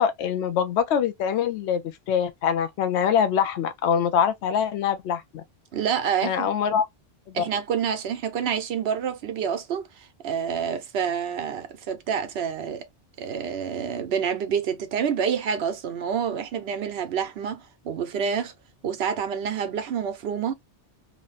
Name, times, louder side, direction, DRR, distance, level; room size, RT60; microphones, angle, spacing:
voice 1, 0.0-5.4 6.2-6.9 7.4-7.5, left 8 dB, 80° left, 0.9 m, -24 dB
voice 2, 5.7-6.5 7.3-9.9 10.2-12.9 13.2-18.5 18.8-20.5, right 7 dB, 70° right, 0.9 m, -28 dB
3.1 x 2.0 x 4.0 m
omnidirectional pair, 1.1 m